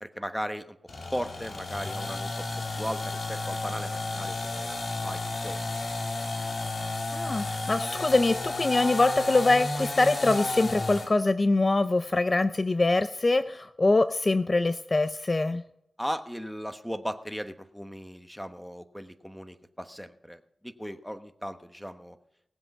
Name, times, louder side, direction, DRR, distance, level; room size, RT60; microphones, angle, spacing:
voice 1, 0.0-0.8 1.1-2.5 2.8-4.8 5.0-5.7 16.0-22.2, equal, 5° left, 8 dB, 1.2 m, -37 dB
sound 1, 0.9-11.1, left 2 dB, 60° left, 2.6 m, -32 dB
voice 2, 7.1-15.6, left 2 dB, 40° left, 11 dB, 0.5 m, -24 dB
18.5 x 7.7 x 5.5 m, 0.78 s
cardioid pair, 65°, 0 cm